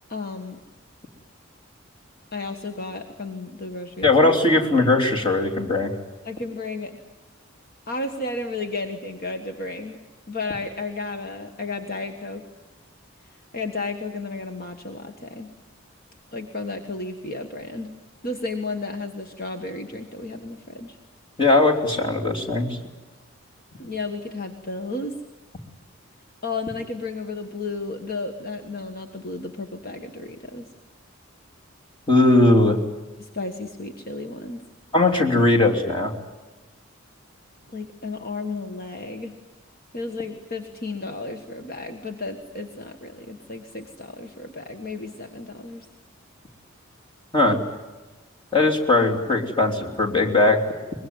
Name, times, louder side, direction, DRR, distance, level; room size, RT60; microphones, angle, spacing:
voice 1, 0.1-0.6 2.3-4.1 6.2-6.9 7.9-10.0 10.3-12.4 13.5-15.5 16.3-17.9 18.2-21.0 23.8-25.1 26.4-30.7 33.2-34.6 37.7-39.3 39.9-45.9, left 3 dB, 50° left, 5 dB, 1.5 m, -33 dB
voice 2, 4.0-5.9 21.4-22.8 32.1-32.8 34.9-36.1 47.3-47.6 48.5-50.6, left 2 dB, 25° left, 0 dB, 3.2 m, -19 dB
24.0 x 21.5 x 9.5 m, 1.1 s
head